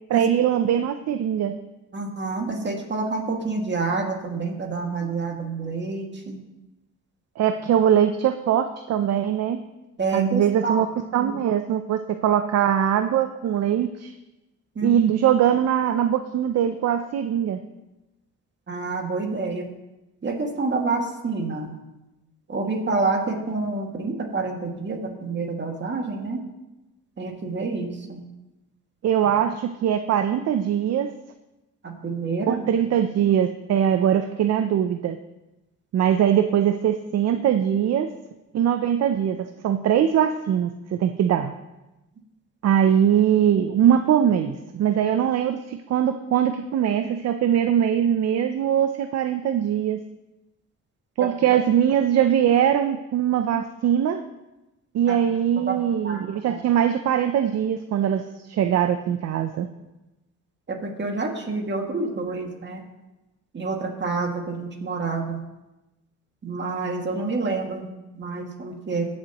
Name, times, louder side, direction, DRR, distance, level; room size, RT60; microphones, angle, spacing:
voice 1, 0.1-1.5 7.4-9.6 10.1-10.9 11.1-14.1 14.8-17.6 29.0-31.1 32.5-35.2 35.9-38.1 38.5-41.5 42.6-50.0 51.2-54.2 54.9-59.7, right 9 dB, 60° right, 8 dB, 0.6 m, -21 dB
voice 2, 1.9-6.4 10.0-10.8 11.2-11.3 14.8-14.9 18.7-19.7 20.2-21.8 22.5-26.4 27.2-28.2 31.8-32.6 51.2-51.6 55.1-55.2 55.7-55.8 56.0-56.6 60.7-62.8 63.5-65.4 66.4-69.1, right 3 dB, 35° right, 2 dB, 2.1 m, -28 dB
20.0 x 7.4 x 3.0 m, 1.0 s
cardioid pair, 90°, 30 cm